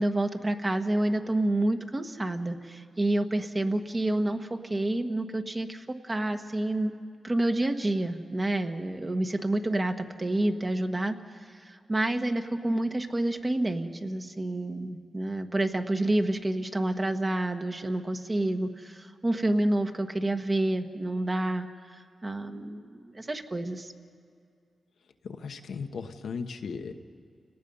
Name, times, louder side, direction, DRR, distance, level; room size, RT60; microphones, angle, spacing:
voice 1, 0.0-6.9 7.2-23.9, right 1 dB, 30° right, 5 dB, 1.4 m, -29 dB
voice 2, 25.2-26.9, left 5 dB, 85° left, 5 dB, 1.1 m, -36 dB
30.0 x 19.0 x 5.5 m, 2.3 s
cardioid pair, 70°, 0 cm